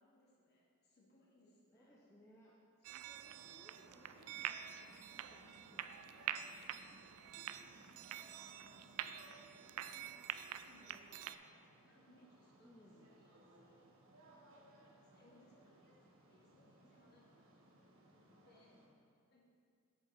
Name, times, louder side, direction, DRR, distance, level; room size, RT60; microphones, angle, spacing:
voice 1, 0.0-1.9 6.6-7.3 9.8-12.7 13.0-13.9 14.7-17.5 18.0-18.8 19.3-19.4, left 1 dB, 45° left, -3 dB, 1.3 m, -69 dB
voice 2, 1.7-2.5 2.9-5.9 12.6-13.1, equal, 10° left, -5 dB, 0.6 m, -65 dB
sound 1, 2.8-11.4, right 11 dB, 80° right, 0.3 m, -47 dB
sound 2, 3.2-18.9, right 1 dB, 65° right, 1.1 m, -64 dB
8.0 x 7.3 x 3.1 m, 2.3 s
head